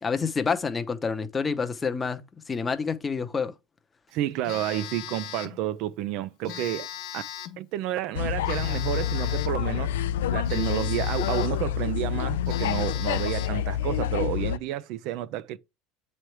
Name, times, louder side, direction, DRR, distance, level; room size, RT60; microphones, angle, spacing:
voice 1, 0.0-2.2 2.5-3.5, left 5 dB, 20° left, 0.7 m, -28 dB
voice 2, 4.1-6.9 7.1-7.2 7.6-9.9 10.3-15.6, right 13 dB, 60° right, 0.4 m, -30 dB
Telephone, 4.4-5.6 6.4-7.6 8.5-9.6 10.5-11.6 12.1-12.2 12.5-13.6, left 11 dB, 65° left, 1.1 m, -39 dB
sound 1, 8.1-14.6, left 10 dB, 90° left, 0.3 m, -27 dB
7.6 x 3.2 x 4.6 m
supercardioid pair, 115°, 0 cm